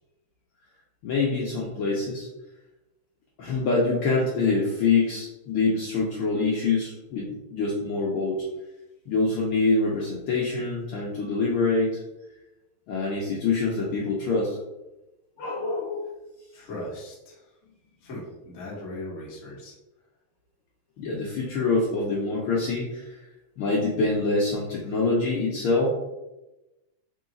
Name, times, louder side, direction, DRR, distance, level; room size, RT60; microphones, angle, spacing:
voice 1, 1.0-2.3 3.4-8.4 9.1-12.0 12.9-14.6 15.4-16.1 21.0-23.1 23.6-25.9, left 3 dB, 90° left, -4 dB, 1.2 m, -25 dB
voice 2, 16.5-17.5 18.0-19.7, left 1 dB, 55° left, -4 dB, 0.8 m, -38 dB
4.7 x 2.9 x 3.8 m, 0.99 s
omnidirectional pair, 3.4 m